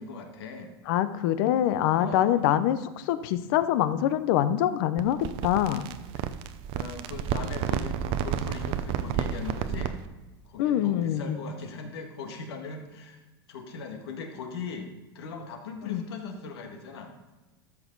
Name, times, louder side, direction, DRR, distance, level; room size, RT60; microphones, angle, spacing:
voice 1, 0.0-0.8 2.0-2.6 6.2-6.4 6.7-10.0 10.5-13.2 13.5-17.2, left 5 dB, 80° left, 4 dB, 1.8 m, -39 dB
voice 2, 0.9-5.9 10.6-11.4 15.8-16.0, left 11 dB, 60° left, 13 dB, 0.7 m, -25 dB
sound 1, 5.0-10.1, right 9 dB, 50° right, 0.7 m, -31 dB
13.0 x 6.2 x 3.9 m, 1.1 s
supercardioid pair, 125°, 13 cm